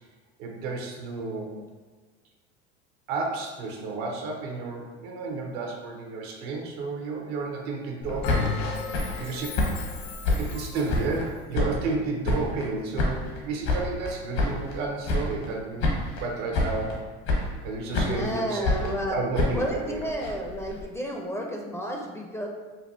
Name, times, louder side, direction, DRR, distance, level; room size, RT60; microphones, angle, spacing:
voice 1, 0.4-1.6 3.1-8.6 9.2-9.6 9.9-10.0 10.4-15.9 16.2-17.0 17.6-18.7 19.1-20.0, right 3 dB, 75° right, 1 dB, 0.9 m, -32 dB
sound 1, 8.0-11.3 11.5-12.7 13.0-14.8 15.0-15.5 15.8-16.3 16.5-17.0 17.3-18.3 18.6-20.8, left 2 dB, 65° left, 1.1 m, -28 dB
Bell, 8.2-11.0, left 4 dB, 85° left, 0.6 m, -35 dB
voice 2, 18.1-19.3 19.5-22.5, equal, 10° left, 0 dB, 0.5 m, -31 dB
5.4 x 2.3 x 2.7 m, 1.4 s
supercardioid pair, 100°, 30 cm